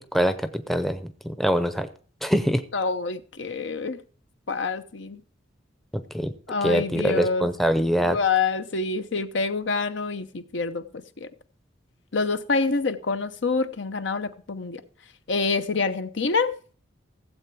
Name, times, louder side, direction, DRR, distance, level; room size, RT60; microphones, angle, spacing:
voice 1, 0.0-1.9 2.2-2.6 5.9-6.3 6.6-8.2, equal, ahead, 0.6 m, -24 dB
voice 2, 2.7-4.0 4.5-5.2 6.5-7.5 8.0-10.8 11.2-11.3 12.1-14.8 15.3-16.5, left 4 dB, 65° left, 0.8 m, -26 dB
16.0 x 7.8 x 4.6 m
head